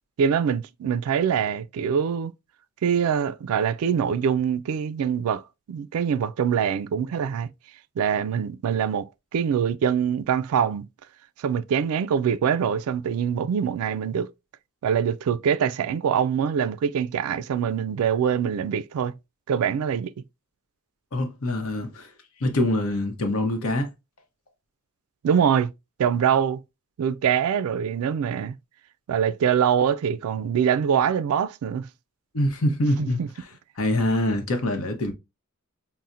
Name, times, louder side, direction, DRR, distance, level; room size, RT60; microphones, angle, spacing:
voice 1, 0.2-2.3 2.8-5.4 5.7-7.5 8.0-9.1 9.3-10.9 11.4-14.3 14.8-19.1 19.5-20.1 25.2-25.7 26.0-26.6 27.0-28.5 29.1-31.9 33.0-33.3, right 7 dB, 70° right, 0.3 m, -24 dB
voice 2, 21.1-22.1 22.4-23.9 32.3-33.2 33.8-35.1, left 1 dB, 70° left, 0.8 m, -24 dB
5.5 x 2.1 x 2.4 m
head